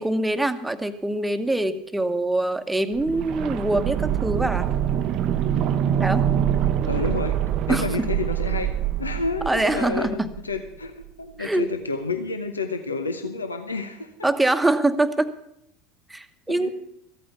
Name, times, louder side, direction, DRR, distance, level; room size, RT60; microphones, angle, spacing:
voice 1, 0.0-4.7 6.0-6.3 7.7-8.1 9.5-10.3 11.4-11.7 14.2-15.3 16.1-16.7, right 2 dB, 10° right, 10 dB, 1.1 m, -24 dB
sound 1, 2.9-10.7 11.0-11.1, right 10 dB, 50° right, 0.7 m, -25 dB
voice 2, 6.8-8.7 9.0-14.1 16.5-16.7, left 3 dB, 85° left, 8 dB, 0.8 m, -30 dB
14.5 x 8.7 x 7.0 m, 0.76 s
figure-of-eight pair, 75°, 0 cm